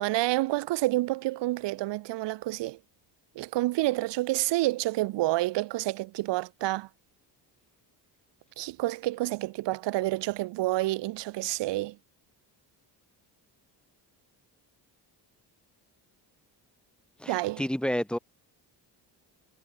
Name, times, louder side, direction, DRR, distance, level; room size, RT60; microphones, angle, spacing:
voice 1, 0.0-2.8 3.4-6.9 8.6-12.0 17.3-17.6, right 17 dB, 80° right, 0.9 m, -28 dB
voice 2, 17.2-18.2, equal, ahead, 2.7 m, -30 dB
cardioid pair, 130°, 42 cm